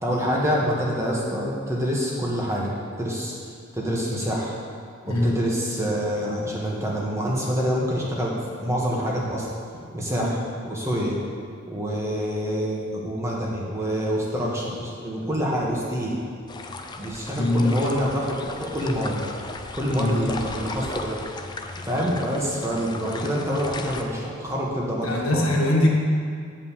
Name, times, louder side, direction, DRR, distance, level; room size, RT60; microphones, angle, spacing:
voice 1, 0.0-3.3 3.7-4.5 5.0-8.3 8.6-9.5 9.9-10.4 10.6-11.2 11.7-16.1 17.0-19.2 19.8-21.3 21.8-25.4, equal, 15° right, -4 dB, 1.5 m, -26 dB
voice 2, 5.1-5.4 10.2-10.4 17.3-17.8 20.0-20.2 25.0-25.9, left 1 dB, 90° left, -1 dB, 1.6 m, -22 dB
sound 1, 16.5-24.0, left 3 dB, 20° left, 0.5 m, -36 dB
9.2 x 5.2 x 7.4 m, 2.1 s
head